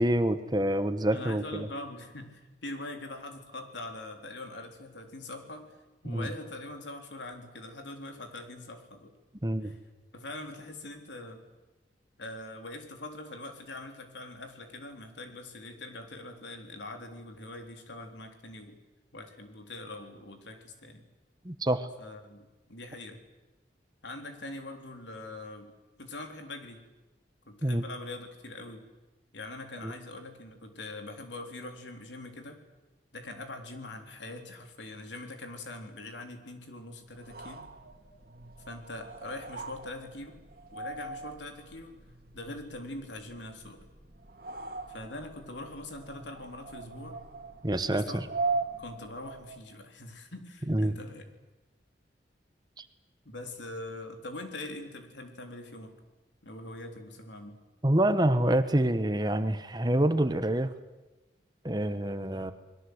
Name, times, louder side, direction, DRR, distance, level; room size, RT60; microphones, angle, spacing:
voice 1, 0.0-1.7 6.0-6.3 9.4-9.7 21.4-21.9 27.6-27.8 29.8-29.9 47.6-48.2 50.7-50.9 52.8-52.9 57.8-60.7 61.6-62.5, right 1 dB, 25° right, 11 dB, 1.1 m, -27 dB
voice 2, 1.1-5.8 6.0-9.1 9.6-9.8 10.1-11.4 12.2-18.8 19.1-21.0 22.0-23.2 24.0-25.7 26.0-26.8 27.5-28.8 29.3-32.6 33.1-37.7 38.7-40.4 40.7-41.9 42.3-43.8 44.9-47.2 47.9-48.2 48.8-51.2 53.2-56.0 56.4-57.6 62.3-62.4, left 2 dB, 85° left, 5 dB, 3.7 m, -43 dB
sound 1, 37.1-49.7, right 3 dB, 55° right, 2.0 m, -40 dB
29.5 x 21.5 x 8.1 m, 1.1 s
head